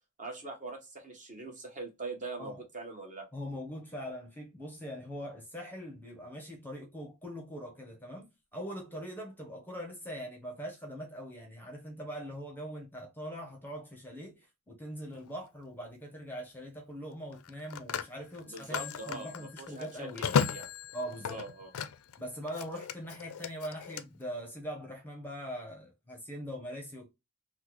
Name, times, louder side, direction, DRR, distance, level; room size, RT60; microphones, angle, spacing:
voice 1, 0.2-3.3 18.5-20.7 21.2-21.7, right 3 dB, 35° right, 1.0 m, -42 dB
voice 2, 3.3-20.4 20.9-21.4 22.2-27.1, equal, 10° left, 0.8 m, -42 dB
Telephone, 15.1-15.4 17.3-22.2 22.5-24.0, left 7 dB, 70° left, 0.4 m, -35 dB
3.7 x 2.1 x 2.9 m
head